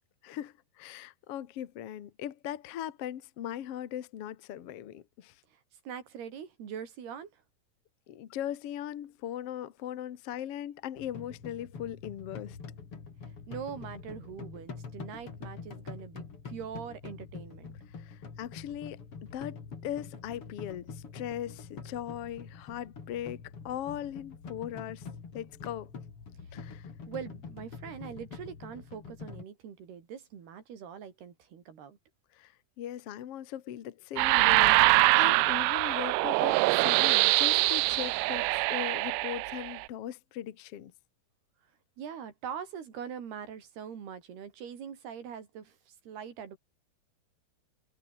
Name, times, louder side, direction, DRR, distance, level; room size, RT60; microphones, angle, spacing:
voice 1, 0.2-5.3 8.1-12.6 18.0-25.1 25.3-25.9 26.5-26.9 32.3-40.9, left 11 dB, 70° left, 1.4 m, -39 dB
voice 2, 5.9-7.3 13.5-17.8 27.1-32.0 42.0-46.6, right 8 dB, 70° right, 5.2 m, -42 dB
sound 1, 11.0-29.4, left 5 dB, 35° left, 3.9 m, -45 dB
sound 2, 34.2-39.8, right 24 dB, 85° right, 2.7 m, -24 dB
omnidirectional pair, 4.8 m